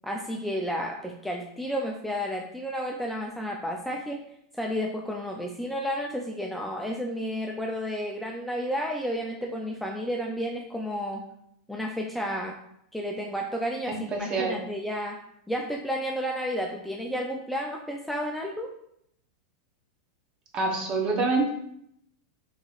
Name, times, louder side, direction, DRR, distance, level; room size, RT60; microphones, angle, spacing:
voice 1, 0.0-4.2 4.6-11.3 11.7-12.6 12.9-15.2 15.5-18.7, equal, ahead, 0 dB, 0.3 m, -31 dB
voice 2, 14.1-14.5 20.5-21.5, right 3 dB, 35° right, 1 dB, 0.9 m, -26 dB
4.0 x 2.8 x 2.4 m, 0.74 s
hypercardioid pair, 120°, 3 cm